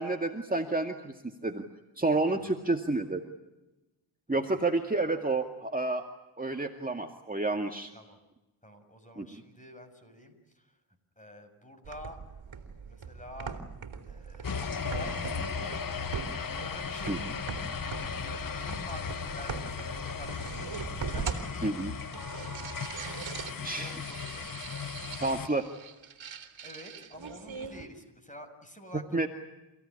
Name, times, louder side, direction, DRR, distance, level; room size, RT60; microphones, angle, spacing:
voice 1, 0.0-1.6 2.0-3.2 4.3-6.0 6.4-7.9 9.2-9.3 17.1-17.2 21.6-21.9 23.6-23.9 25.2-25.7 29.1-29.3, right 2 dB, 15° right, 4 dB, 2.1 m, -30 dB
voice 2, 8.6-10.7 11.2-12.2 12.9-13.6 14.1-15.9 16.5-17.6 18.0-20.7 21.1-21.8 23.6-24.5 26.6-29.3, equal, 15° left, 6 dB, 6.8 m, -48 dB
sound 1, 11.8-27.8, right 5 dB, 65° right, 3.2 m, -41 dB
sound 2, 14.4-25.5, left 6 dB, 40° left, 1.3 m, -36 dB
28.5 x 16.5 x 10.0 m, 1.0 s
cardioid pair, 60°, 50 cm